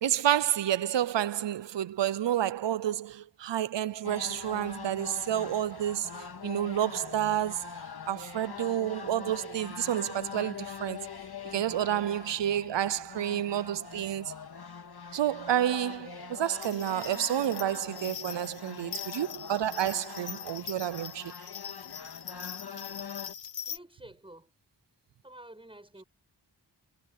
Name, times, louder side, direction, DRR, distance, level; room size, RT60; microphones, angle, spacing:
voice 1, 0.0-7.7 8.1-11.1 11.5-14.3 15.1-21.3, right 11 dB, 85° right, 0.7 m, -30 dB
sound 1, 4.0-23.3, left 6 dB, 60° left, 2.3 m, -43 dB
sound 2, 16.6-23.8, left 8 dB, 85° left, 1.2 m, -42 dB
voice 2, 23.7-24.5 25.2-26.0, right 1 dB, 10° right, 7.4 m, -50 dB
wide cardioid pair, 85°, 42 cm